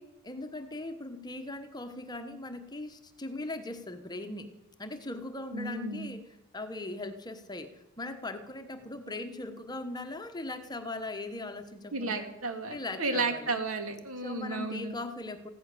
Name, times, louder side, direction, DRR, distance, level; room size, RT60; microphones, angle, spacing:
voice 1, 0.2-4.5 4.8-6.3 6.5-12.3 12.7-13.6 14.2-15.5, left 2 dB, 20° left, 8 dB, 1.1 m, -39 dB
voice 2, 5.5-6.1 11.9-14.9, right 3 dB, 80° right, 6 dB, 2.5 m, -33 dB
15.5 x 13.5 x 6.8 m, 0.92 s
head